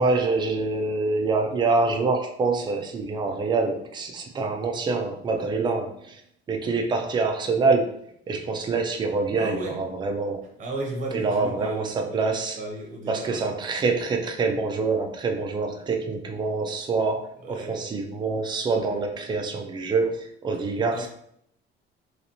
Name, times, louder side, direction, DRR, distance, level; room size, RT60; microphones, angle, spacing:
voice 1, 0.0-6.2 6.5-10.4 11.1-12.6 13.1-21.1, right 3 dB, 20° right, 4 dB, 0.3 m, -26 dB
voice 2, 9.3-9.8 10.6-12.2 12.5-13.4 17.4-17.9 18.7-19.0 20.8-21.1, right 2 dB, 40° right, 0 dB, 0.8 m, -35 dB
3.1 x 2.6 x 2.9 m, 0.71 s
cardioid pair, 165°, 20 cm